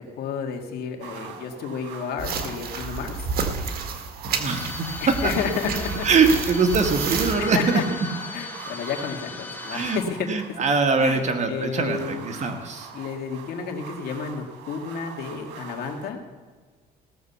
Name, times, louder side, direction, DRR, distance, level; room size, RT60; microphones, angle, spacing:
voice 1, 0.2-3.2 5.0-6.4 7.4-7.8 8.3-10.3 11.0-11.2 11.5-12.4 12.9-16.2, left 6 dB, 70° left, 2 dB, 2.0 m, -31 dB
sound 1, 1.0-16.1, right 7 dB, 90° right, 1.6 m, -42 dB
sound 2, 2.2-7.4, right 5 dB, 65° right, 1.7 m, -30 dB
voice 2, 4.4-5.3 6.0-7.8 9.7-10.0 10.3-12.9, right 4 dB, 45° right, 6 dB, 1.7 m, -22 dB
sound 3, 4.5-10.0, left 3 dB, 10° left, 1.6 m, -37 dB
17.0 x 6.8 x 7.0 m, 1.5 s
cardioid pair, 110°, 17 cm